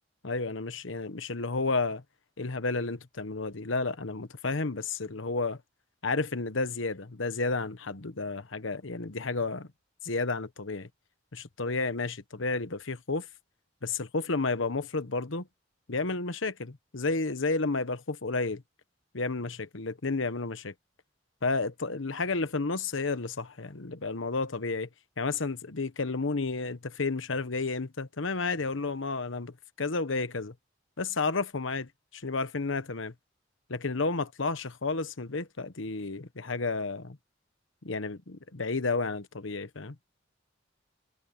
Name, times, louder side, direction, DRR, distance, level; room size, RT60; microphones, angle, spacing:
voice 1, 0.2-2.0 2.4-5.6 6.0-9.7 10.0-10.9 11.3-13.3 13.8-15.5 15.9-18.6 19.1-20.7 21.4-24.9 25.2-30.5 31.0-33.1 33.7-37.2 37.8-39.9, left 3 dB, 85° left, 1.2 m, -31 dB
head